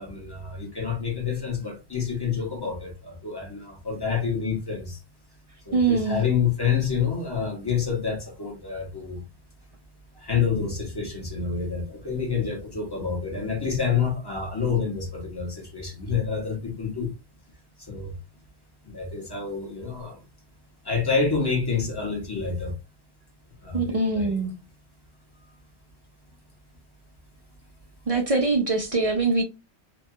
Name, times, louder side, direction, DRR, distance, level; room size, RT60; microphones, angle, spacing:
voice 1, 0.0-5.0 5.6-9.2 10.1-17.1 17.8-18.1 18.8-20.2 20.8-22.7 23.6-24.4, left 6 dB, 20° left, 1.2 m, -28 dB
voice 2, 5.7-6.2 23.7-24.5 28.1-29.4, right 3 dB, 50° right, 0.4 m, -23 dB
2.9 x 2.3 x 2.7 m
omnidirectional pair, 1.1 m